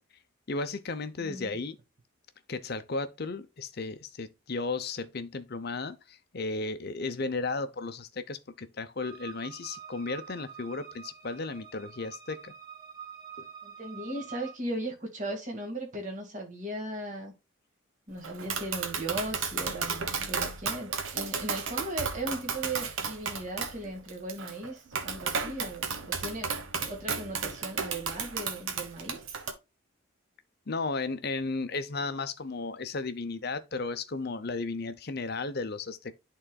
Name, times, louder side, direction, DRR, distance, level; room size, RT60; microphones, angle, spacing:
voice 1, 0.5-1.8 2.5-12.5 13.4-13.5 30.7-36.2, left 3 dB, 50° left, 0.6 m, -34 dB
voice 2, 1.2-1.5 13.6-17.3 18.1-29.2, right 1 dB, 35° right, 1.9 m, -37 dB
sound 1, 9.0-14.5, right 7 dB, 20° right, 1.8 m, -46 dB
Tap, 18.2-29.5, right 5 dB, 65° right, 1.0 m, -34 dB
11.0 x 3.9 x 2.3 m
head